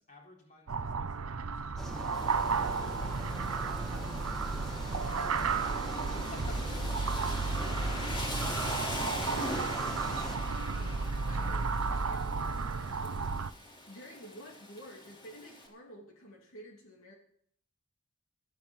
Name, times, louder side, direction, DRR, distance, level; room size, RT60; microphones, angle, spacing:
voice 1, 0.0-3.2 6.0-6.6 7.0-7.4 7.7-8.4, left 3 dB, 40° left, -1 dB, 3.9 m, -55 dB
sound 1, 0.7-13.5, right 4 dB, 85° right, 0.7 m, -33 dB
sound 2, 1.8-10.4, equal, ahead, 1.8 m, -42 dB
Rain, 2.1-15.7, left 1 dB, 25° left, 3.4 m, -43 dB
voice 2, 5.0-7.1 9.0-17.1, equal, 70° left, -1 dB, 2.9 m, -51 dB
13.5 x 9.3 x 7.3 m, 0.65 s
head